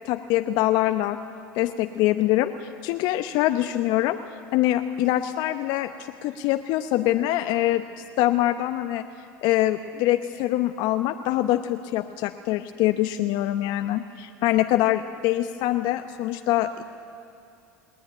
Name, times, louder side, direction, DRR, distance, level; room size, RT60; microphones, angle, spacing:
voice 1, 0.0-1.2 1.5-4.2 4.5-5.9 6.2-7.8 8.2-9.1 9.4-16.8, left 14 dB, 60° left, 8 dB, 0.8 m, -24 dB
20.0 x 17.0 x 9.8 m, 2.6 s
hypercardioid pair, 80°, 9 cm